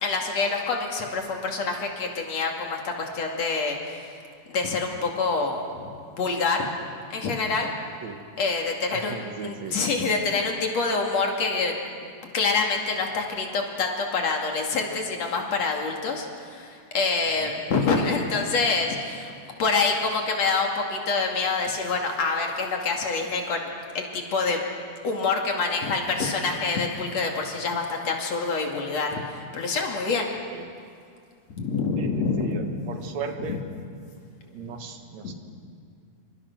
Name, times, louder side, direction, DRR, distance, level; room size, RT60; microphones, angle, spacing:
voice 1, 0.0-4.2 4.5-6.7 7.1-7.7 8.4-9.2 9.4-11.7 12.0-19.3 19.6-24.6 25.0-30.3 31.5-32.6 33.5-33.6 34.6-34.8 35.2-35.3, left 4 dB, 65° left, 1 dB, 3.6 m, -26 dB
voice 2, 8.9-9.8 17.4-17.6 30.5-30.7 32.0-33.6 34.5-35.3, right 5 dB, 70° right, 5 dB, 2.7 m, -37 dB
27.5 x 25.0 x 6.2 m, 2.3 s
omnidirectional pair, 3.3 m